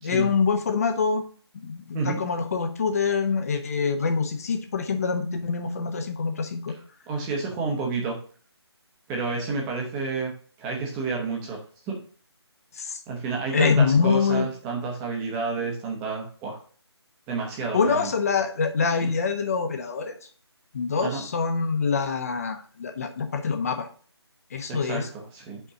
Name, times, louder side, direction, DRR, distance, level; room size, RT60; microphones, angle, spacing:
voice 1, 0.0-1.2 1.6-6.7 12.7-13.0 13.5-14.5 17.7-20.1 20.7-23.9 24.5-25.1, left 5 dB, 35° left, 6 dB, 0.9 m, -25 dB
voice 2, 7.1-8.2 9.1-11.6 11.9-12.0 13.1-16.6 17.3-18.1 19.0-19.1 21.0-21.2 24.7-25.6, right 4 dB, 10° right, -2 dB, 0.9 m, -30 dB
5.6 x 4.4 x 6.2 m, 0.42 s
figure-of-eight pair, 165°, 14 cm